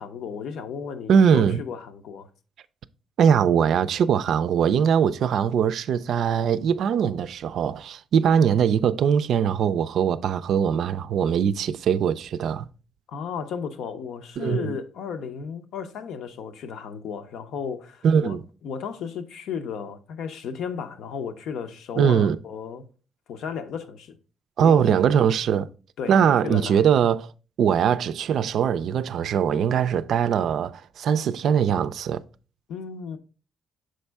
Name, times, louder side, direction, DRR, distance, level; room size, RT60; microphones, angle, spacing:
voice 1, 0.0-2.3 13.1-18.4 18.6-22.9 23.3-24.2 24.6-24.8 26.0-26.8 32.7-33.2, left 6 dB, 80° left, 0.7 m, -34 dB
voice 2, 1.1-1.6 3.2-12.7 14.4-14.8 18.0-18.4 22.0-22.4 24.6-25.7 26.1-27.3 27.6-32.2, right 8 dB, 70° right, 0.3 m, -21 dB
6.4 x 4.3 x 3.4 m
cardioid pair, 90°, 0 cm